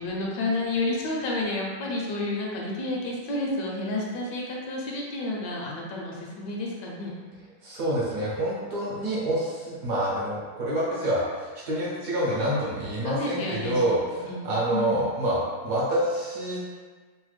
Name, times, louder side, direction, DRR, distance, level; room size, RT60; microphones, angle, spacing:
voice 1, 0.0-7.1 13.0-14.4 14.7-15.0, left 2 dB, 80° left, -2 dB, 1.2 m, -30 dB
voice 2, 7.6-16.6, right 1 dB, 60° right, -7 dB, 1.0 m, -27 dB
3.3 x 2.0 x 3.2 m, 1.4 s
omnidirectional pair, 1.9 m